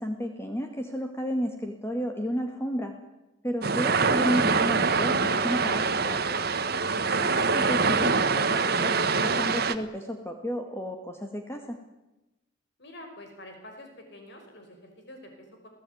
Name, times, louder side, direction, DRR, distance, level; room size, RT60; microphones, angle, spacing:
voice 1, 0.0-2.9 3.4-6.4 7.2-8.9 9.2-11.8, equal, 15° left, 4 dB, 2.0 m, -32 dB
sound 1, 3.6-9.8, right 4 dB, 50° right, 1.4 m, -24 dB
voice 2, 12.8-15.7, left 1 dB, 55° left, 4 dB, 5.2 m, -47 dB
29.0 x 17.5 x 9.4 m, 1.0 s
head